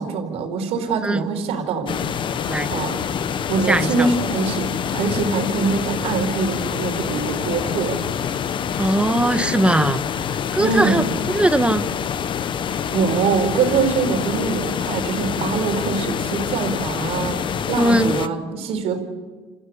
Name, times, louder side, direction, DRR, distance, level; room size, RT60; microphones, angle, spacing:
voice 1, 0.0-2.1 2.4-3.0 3.5-8.0 10.6-11.1 12.9-19.0, right 4 dB, 65° right, 5 dB, 4.5 m, -23 dB
sound 1, 1.9-18.3, left 8 dB, 45° left, 1.0 m, -26 dB
voice 2, 3.6-4.1 8.8-10.0 10.5-11.8 17.8-18.2, right 1 dB, 10° right, 10 dB, 1.5 m, -20 dB
29.0 x 14.0 x 8.3 m, 1.4 s
supercardioid pair, 75°, 11 cm